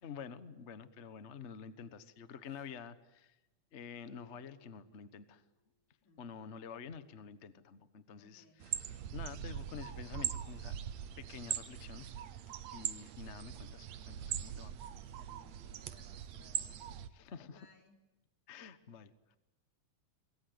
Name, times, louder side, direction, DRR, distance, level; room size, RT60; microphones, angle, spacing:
voice 1, 0.0-3.4 3.7-5.4 6.2-10.7 11.2-12.2 12.7-14.8 17.1-17.7 18.5-19.1, left 6 dB, 60° left, 12 dB, 0.7 m, -49 dB
Marimba xylophone, 4.1-5.8, left 5 dB, 35° right, 6.6 m, -65 dB
voice 2, 6.0-6.4 8.2-8.7 15.2-16.7 17.2-18.0, left 3 dB, 90° left, 4 dB, 4.8 m, -66 dB
sound 1, 8.6-17.1, right 10 dB, 70° right, 2.3 m, -41 dB
27.0 x 22.0 x 9.7 m, 0.98 s
omnidirectional pair, 3.4 m